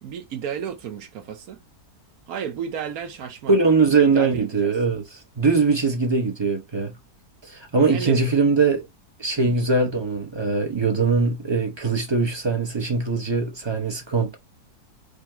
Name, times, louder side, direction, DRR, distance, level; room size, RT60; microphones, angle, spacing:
voice 1, 0.0-1.6 2.3-3.6 3.9-4.8 7.9-8.3 9.4-9.6, right 8 dB, 70° right, 1.2 m, -33 dB
voice 2, 3.5-5.0 5.4-7.0 7.4-8.8 9.2-14.3, right 4 dB, 25° right, 0.6 m, -21 dB
5.1 x 2.3 x 4.4 m
omnidirectional pair, 1.7 m